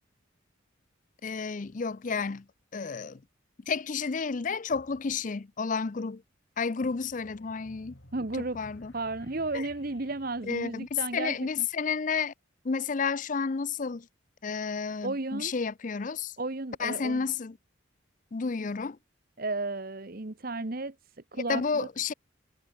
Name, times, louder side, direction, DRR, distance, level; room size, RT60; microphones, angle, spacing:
voice 1, 1.2-2.4 2.7-3.2 3.7-6.2 6.6-7.9 8.5-8.9 9.5-9.7 10.5-12.3 12.6-14.1 14.4-16.3 16.8-17.6 18.3-19.0 21.5-22.1, left 5 dB, 40° left, 0.5 m, -31 dB
sound 1, 6.8-11.8, equal, 60° left, 6.8 m, -54 dB
voice 2, 8.1-8.6 8.9-11.7 15.0-15.5 16.4-17.3 19.4-20.9 21.3-21.9, right 2 dB, 45° right, 1.2 m, -33 dB
head